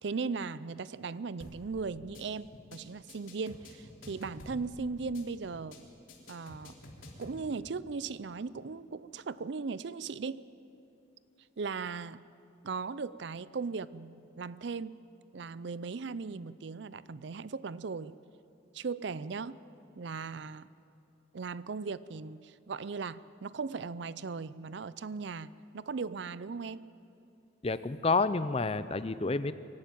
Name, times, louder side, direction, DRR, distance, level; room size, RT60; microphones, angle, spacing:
voice 1, 0.0-5.8 6.3-6.7 7.2-10.5 11.6-12.2 12.6-15.0 15.3-18.2 18.7-19.6 20.0-20.7 21.3-26.9, right 4 dB, 60° right, 17 dB, 0.5 m, -38 dB
sound 1, 1.4-1.7 2.0-2.2 2.5-2.8 3.1-4.7 5.0-5.2 5.5-5.8 6.1-7.4, left 1 dB, 75° left, 3.4 m, -49 dB
voice 2, 27.6-29.5, left 3 dB, 30° left, 14 dB, 0.5 m, -29 dB
23.5 x 12.0 x 9.2 m, 2.7 s
head